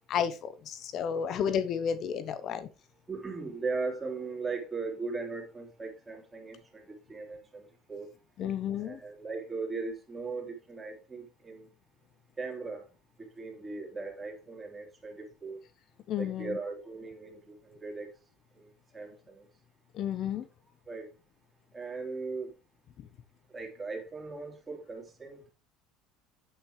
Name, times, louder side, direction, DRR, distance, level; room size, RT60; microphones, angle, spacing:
voice 1, 0.0-2.7 8.4-9.0 16.1-16.6 19.9-20.5, left 8 dB, 50° left, 0.9 m, -32 dB
voice 2, 3.1-8.1 8.8-11.7 12.4-12.9 13.2-15.6 16.2-18.1 18.6-19.5 20.9-21.1 21.7-22.5 23.5-25.5, right 4 dB, 15° right, 3.7 m, -38 dB
8.9 x 8.9 x 3.2 m
supercardioid pair, 110°, 0 cm